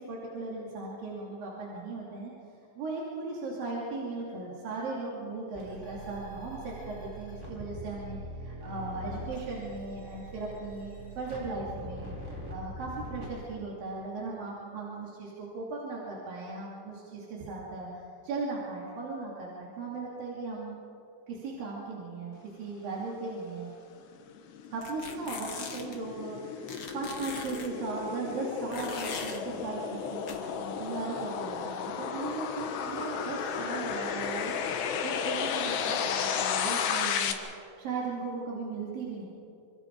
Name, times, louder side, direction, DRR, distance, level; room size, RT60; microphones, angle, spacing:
voice 1, 0.0-2.3 2.7-20.8 21.3-23.7 24.7-37.3 37.8-39.3, right 3 dB, 55° right, -5 dB, 4.3 m, -37 dB
sound 1, 5.5-13.3, right 1 dB, 5° right, 5.7 m, -42 dB
sound 2, 24.1-37.3, left 7 dB, 75° left, 3.4 m, -33 dB
sound 3, 24.8-26.0 26.7-27.7 28.7-29.4 30.3-30.4, left 5 dB, 50° left, 1.7 m, -40 dB
27.5 x 27.0 x 4.7 m, 2.9 s
omnidirectional pair, 5.0 m